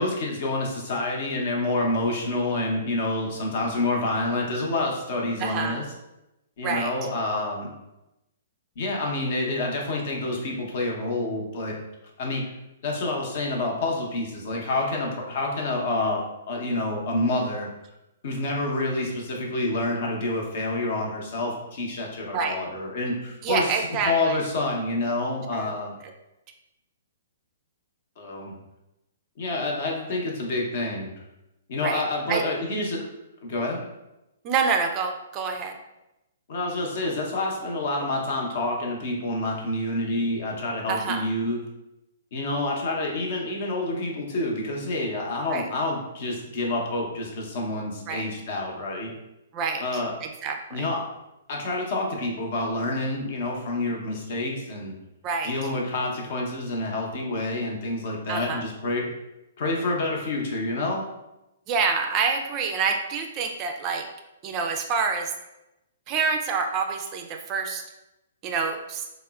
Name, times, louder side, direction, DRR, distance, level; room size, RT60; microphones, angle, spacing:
voice 1, 0.0-5.8 6.6-7.7 8.8-11.7 12.2-12.4 12.8-17.7 18.2-23.7 24.1-26.0 28.2-28.6 29.4-31.1 31.7-33.0 33.4-33.8 36.5-41.6 42.3-49.1 49.8-50.1 50.7-51.1 51.5-54.9 55.4-59.1 59.6-61.0, left 2 dB, 55° left, 0 dB, 0.7 m, -28 dB
voice 2, 5.4-5.8 6.6-6.9 22.3-22.6 23.4-24.4 25.5-25.7 31.8-32.0 32.3-32.4 34.4-35.7 40.9-41.3 45.5-45.7 48.1-48.3 49.5-50.9 55.2-55.5 58.3-58.6 61.7-64.1 64.4-65.3 66.1-67.8 68.4-69.0, right 5 dB, 30° right, 3 dB, 0.3 m, -27 dB
3.6 x 2.0 x 2.3 m, 0.93 s
hypercardioid pair, 125°, 0 cm